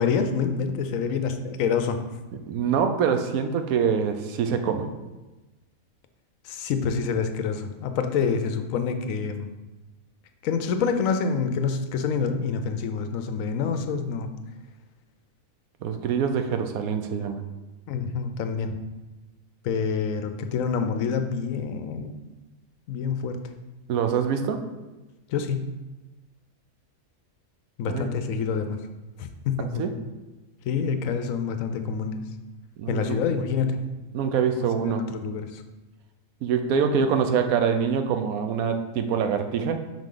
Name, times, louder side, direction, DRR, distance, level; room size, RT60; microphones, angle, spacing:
voice 1, 0.0-2.0 6.4-9.5 10.4-14.3 17.9-18.7 19.6-22.2 22.9-23.4 25.3-25.7 27.8-28.8 29.2-29.8 30.6-32.2 32.9-33.8 34.6-35.6, left 6 dB, 75° left, 8 dB, 1.0 m, -27 dB
voice 2, 2.5-4.9 15.8-17.4 23.9-24.6 27.9-28.1 29.8-29.9 32.8-33.2 34.1-35.1 36.4-39.8, right 6 dB, 85° right, 7 dB, 1.1 m, -25 dB
5.5 x 5.0 x 3.8 m, 1.1 s
omnidirectional pair, 1.5 m